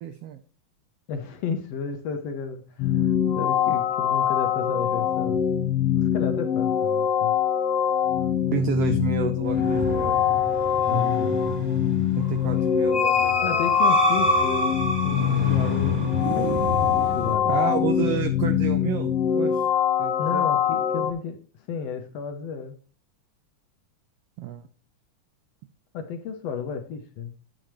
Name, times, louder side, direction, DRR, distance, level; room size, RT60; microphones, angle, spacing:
voice 1, 0.0-0.4 8.5-10.2 12.2-13.7 17.4-19.6 20.0-20.5 24.4-24.6, right 10 dB, 85° right, 9 dB, 1.3 m, -30 dB
voice 2, 1.1-5.4 5.9-7.3 10.9-11.4 13.4-14.8 15.0-16.0 16.3-16.5 16.8-17.6 20.2-21.4 21.7-22.8 25.9-27.3, left 6 dB, 65° left, 6 dB, 1.7 m, -32 dB
sound 1, 2.8-21.1, left 9 dB, 85° left, 1.3 m, -23 dB
sound 2, 9.4-17.4, right 1 dB, 25° right, 1.8 m, -28 dB
10.0 x 7.7 x 3.1 m, 0.40 s
omnidirectional pair, 3.5 m